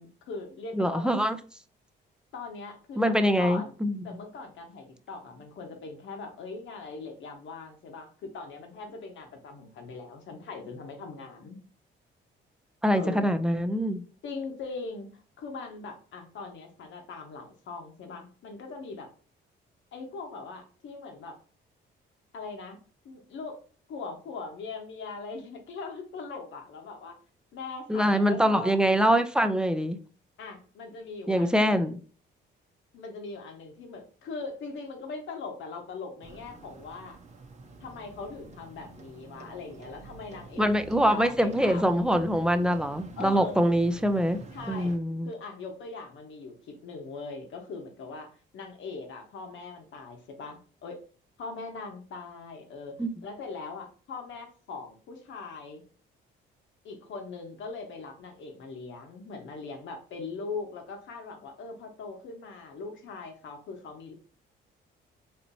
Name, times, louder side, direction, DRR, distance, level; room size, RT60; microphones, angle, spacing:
voice 1, 0.0-1.1 2.3-3.7 4.0-11.6 12.9-13.3 14.2-15.1 15.4-19.1 19.9-21.4 22.3-22.8 23.0-23.6 23.9-27.2 27.5-28.7 30.4-31.8 32.9-37.2 37.8-42.0 43.2-43.6 44.5-44.9 45.2-51.0 51.4-53.0 53.2-55.8 56.8-64.1, left 4 dB, 75° left, 1.1 m, -40 dB
voice 2, 0.7-1.4 3.0-4.0 12.8-14.0 27.9-30.0 31.3-32.0 40.6-44.4 44.7-45.3 53.0-53.1, equal, 5° right, 0.4 m, -24 dB
sound 1, 36.2-45.0, right 3 dB, 35° right, 0.8 m, -48 dB
4.4 x 2.9 x 2.7 m
cardioid pair, 90°, 20 cm